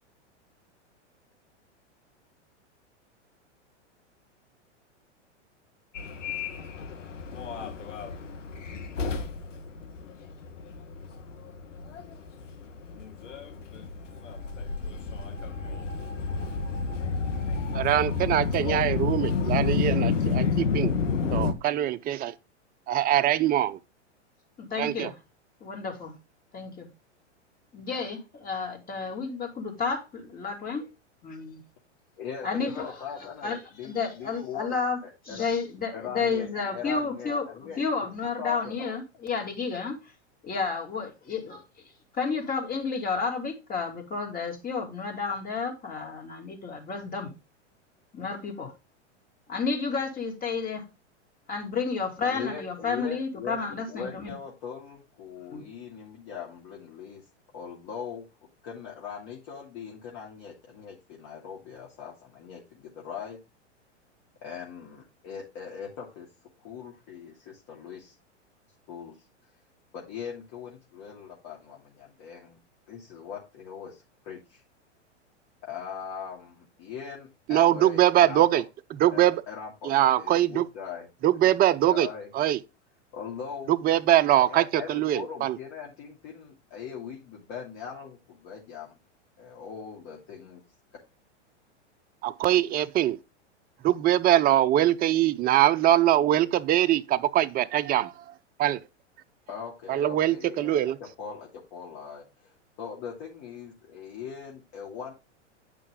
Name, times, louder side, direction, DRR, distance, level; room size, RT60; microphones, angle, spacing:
Subway metro underground, 5.9-21.5, left 5 dB, 90° left, 1.6 m, -30 dB
voice 1, 17.7-20.9 21.3-22.3 22.9-23.8 24.8-25.1 77.5-78.6 79.0-79.3 79.8-80.7 81.2-82.1 82.3-82.6 83.7-85.5 92.2-93.2 93.8-98.1 98.6-98.8 99.9-101.0, right 12 dB, 25° right, 0.6 m, -23 dB
voice 2, 24.6-25.2 25.6-26.1 26.5-26.9 27.7-30.9 31.2-31.6 32.4-32.9 33.4-33.6 33.8-35.0 35.2-40.0 40.4-41.6 42.2-47.3 48.1-48.7 49.5-50.9 51.5-54.3 55.5-55.7, left 5 dB, 25° left, 2.8 m, -31 dB
voice 3, 32.2-35.5 35.9-37.8 38.2-38.8 52.2-53.6 53.9-57.2 57.5-58.3 58.6-63.4 64.4-66.3 66.6-68.1 68.9-69.3 69.9-72.6 72.9-74.6 75.6-78.6 79.1-81.1 81.4-82.3 83.1-83.7 84.4-89.0 89.4-90.6 99.5-105.1, left 7 dB, 45° left, 2.8 m, -40 dB
9.6 x 5.5 x 3.7 m
hypercardioid pair, 115°, 36 cm